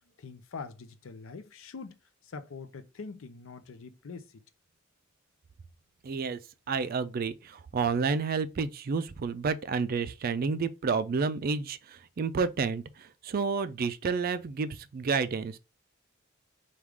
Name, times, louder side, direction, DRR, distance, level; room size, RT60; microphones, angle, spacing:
voice 1, 0.2-4.4, left 4 dB, 75° left, 0.5 m, -44 dB
voice 2, 6.0-6.4 6.7-15.6, right 5 dB, 45° right, 0.4 m, -30 dB
4.6 x 2.4 x 3.5 m
head